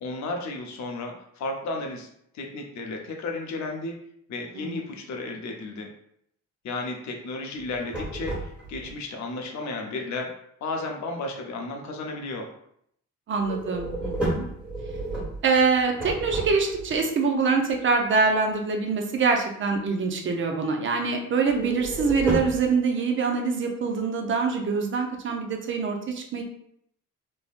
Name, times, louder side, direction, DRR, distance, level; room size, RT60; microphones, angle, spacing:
voice 1, 0.0-2.1 2.3-3.9 4.3-5.9 6.6-10.3 10.6-12.5, left 3 dB, 65° left, 2 dB, 0.7 m, -33 dB
sound 1, 7.6-8.9 13.4-17.0 21.5-22.7, right 1 dB, 5° right, 1.4 m, -31 dB
voice 2, 13.3-14.4 15.4-26.4, right 4 dB, 40° right, 3 dB, 0.6 m, -24 dB
3.2 x 2.1 x 2.4 m, 0.71 s
cardioid pair, 90°, 30 cm